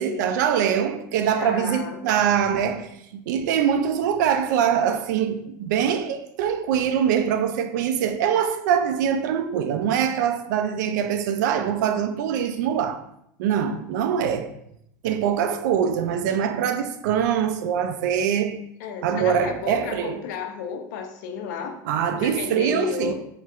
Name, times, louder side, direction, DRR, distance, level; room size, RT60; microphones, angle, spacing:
voice 1, 0.0-13.0 13.4-14.6 15.0-18.6 19.0-20.2 21.9-23.1, right 8 dB, 75° right, 0.4 m, -23 dB
voice 2, 1.2-2.0 18.8-21.8 22.1-23.1, left 7 dB, 75° left, 0.6 m, -32 dB
4.4 x 2.8 x 2.4 m
supercardioid pair, 125°, 10 cm